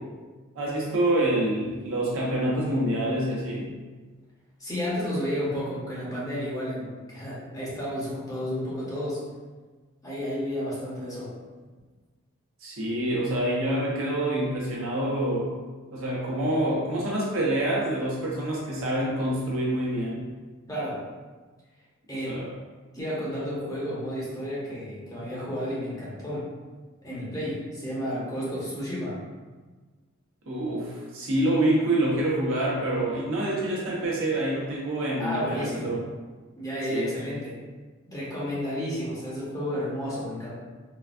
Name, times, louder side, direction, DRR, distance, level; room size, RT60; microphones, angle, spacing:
voice 1, 0.5-3.7 12.6-15.5 15.9-20.3 22.1-22.5 30.5-36.0 36.9-37.1, right 1 dB, 75° right, -5 dB, 0.9 m, -26 dB
voice 2, 4.6-9.2 10.0-11.3 20.7-21.0 22.1-22.4 22.9-26.4 27.0-29.2 35.2-36.0 36.6-37.6 38.1-40.5, equal, 15° left, -7 dB, 0.8 m, -31 dB
3.9 x 2.2 x 2.4 m, 1.4 s
head